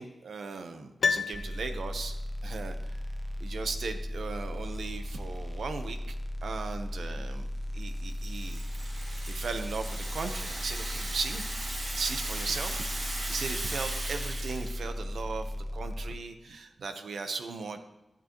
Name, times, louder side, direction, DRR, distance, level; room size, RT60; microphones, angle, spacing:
voice 1, 0.0-2.1 2.4-3.0 3.4-6.2 6.4-7.5 7.7-8.6 9.3-11.4 11.9-17.8, right 4 dB, 80° right, 7 dB, 1.0 m, -37 dB
Piano, 1.0-2.3 2.5-2.6, left 5 dB, 70° left, 0.3 m, -31 dB
sound 1, 1.3-16.1, left 1 dB, 10° right, 1.0 m, -36 dB
Rattle (instrument), 7.9-14.8, right 2 dB, 55° right, 2.5 m, -38 dB
14.0 x 8.9 x 3.1 m, 0.96 s
wide cardioid pair, 80°, 0 cm